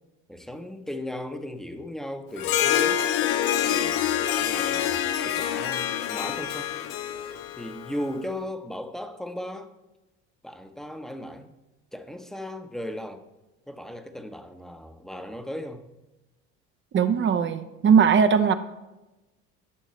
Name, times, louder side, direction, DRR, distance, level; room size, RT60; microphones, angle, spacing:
voice 1, 0.3-3.0 3.6-6.8 7.6-9.7 10.4-11.5 11.9-13.2 13.7-15.8, left 1 dB, ahead, 7 dB, 0.9 m, -37 dB
Harp, 2.4-8.1, left 10 dB, 80° left, 0.6 m, -26 dB
voice 2, 16.9-18.5, right 6 dB, 40° right, 9 dB, 0.7 m, -19 dB
11.5 x 6.4 x 3.2 m, 1.0 s
supercardioid pair, 80°, 31 cm